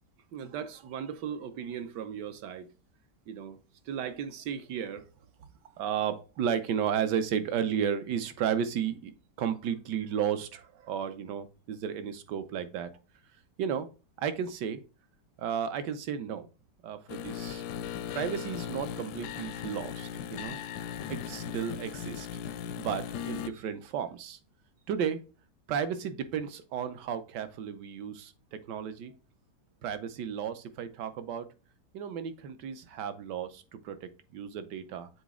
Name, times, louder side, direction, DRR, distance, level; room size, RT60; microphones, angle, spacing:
voice 1, 0.3-2.7 3.3-3.6 3.9-5.0 5.8-12.9 13.6-13.9 14.2-14.8 15.4-16.5 16.8-17.6 18.1-20.6 21.1-22.3 22.8-24.4 24.9-25.2 25.7-29.1 29.8-31.5 31.9-35.1, right 8 dB, 80° right, 11 dB, 1.4 m, -34 dB
sound 1, 17.1-23.5, left 9 dB, 85° left, 1.2 m, -38 dB
7.2 x 4.0 x 3.6 m, 0.33 s
omnidirectional pair, 1.8 m